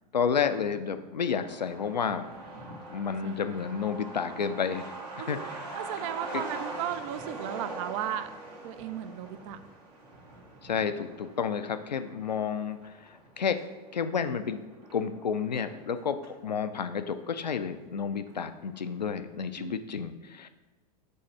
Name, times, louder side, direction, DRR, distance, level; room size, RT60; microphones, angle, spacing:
voice 1, 0.1-2.3 2.9-4.9 5.2-5.6 6.3-6.4 10.6-13.6 13.9-14.6 14.9-20.5, left 6 dB, 90° left, 10 dB, 0.4 m, -31 dB
Truck, 1.2-16.4 16.8-16.9 17.1-18.0 18.3-18.4 18.7-19.1, right 2 dB, 70° right, 1.6 m, -43 dB
voice 2, 3.2-3.6 5.2-5.5 5.8-8.3 8.6-9.6 19.6-19.8, right 11 dB, 50° right, 12 dB, 0.4 m, -35 dB
5.4 x 3.2 x 5.5 m, 1.2 s
figure-of-eight pair, 90°, 21 cm